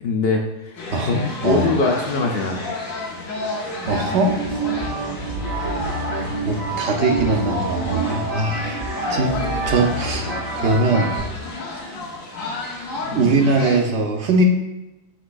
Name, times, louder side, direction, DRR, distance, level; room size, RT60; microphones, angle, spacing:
voice 1, 0.0-0.8 1.1-2.6 13.1-13.5, left 3 dB, 60° left, 0 dB, 0.7 m, -22 dB
sound 1, 0.8-13.8, left 2 dB, 90° left, 1.3 m, -31 dB
voice 2, 0.9-1.7 3.9-4.3 6.4-8.8 9.1-9.3 9.7-11.1 13.1-14.4, right 3 dB, 65° right, 3 dB, 0.8 m, -21 dB
sound 2, 3.8-11.2, right 4 dB, 85° right, 2.1 m, -29 dB
sound 3, 4.6-11.4, left 1 dB, 50° right, 0.5 m, -34 dB
5.9 x 3.1 x 2.5 m, 0.98 s
omnidirectional pair, 1.3 m